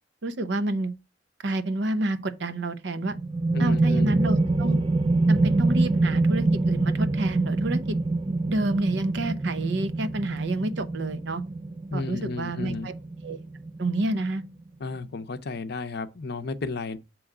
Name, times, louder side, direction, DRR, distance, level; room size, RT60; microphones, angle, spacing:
voice 1, 0.2-0.9 1.4-3.2 3.6-4.8 5.3-8.0 8.5-11.4 11.9-12.9 13.2-13.4 13.8-14.4, right 2 dB, 65° right, 0.7 m, -29 dB
sound 1, 3.0-14.4, right 2 dB, 30° right, 0.4 m, -25 dB
voice 2, 3.5-4.2 11.9-12.9 14.8-17.0, left 3 dB, 60° left, 0.6 m, -33 dB
7.5 x 3.1 x 4.8 m
head